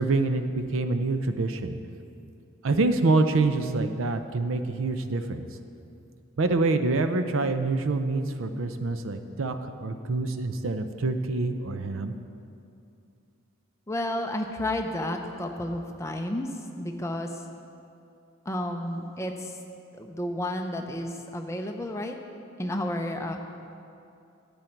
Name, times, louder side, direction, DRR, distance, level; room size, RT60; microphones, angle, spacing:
voice 1, 0.0-1.8 2.6-5.4 6.4-12.1, right 3 dB, 80° right, 9 dB, 0.6 m, -26 dB
voice 2, 13.9-16.5 16.8-17.4 18.4-19.6 19.9-22.2 22.6-23.4, left 1 dB, 15° left, 4 dB, 0.6 m, -31 dB
11.5 x 8.7 x 4.5 m, 2.6 s
head